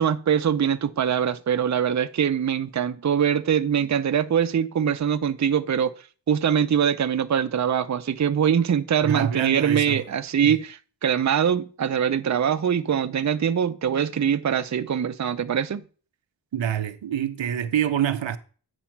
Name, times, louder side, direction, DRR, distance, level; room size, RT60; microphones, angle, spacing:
voice 1, 0.0-5.9 6.3-15.8, right 8 dB, 40° right, 0.6 m, -23 dB
voice 2, 9.0-10.0 10.4-10.5 16.5-18.4, right 9 dB, 90° right, 0.7 m, -26 dB
8.7 x 5.0 x 4.5 m
wide cardioid pair, 65°, 44 cm